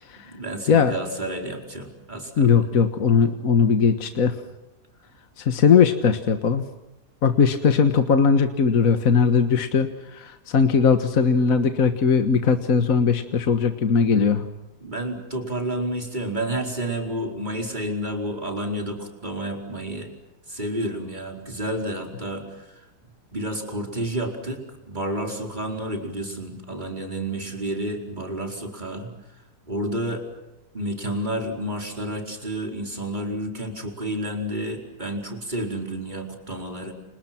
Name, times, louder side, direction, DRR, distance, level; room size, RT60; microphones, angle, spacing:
voice 1, 0.2-2.5 14.8-20.1 20.5-22.9 23.3-24.6 24.9-29.1 29.7-30.3 30.7-36.9, right 1 dB, 25° right, 2 dB, 4.8 m, -30 dB
voice 2, 2.4-4.4 5.4-6.7 7.2-14.5, left 6 dB, 60° left, 7 dB, 1.8 m, -19 dB
30.0 x 27.5 x 6.0 m, 0.97 s
omnidirectional pair, 1.7 m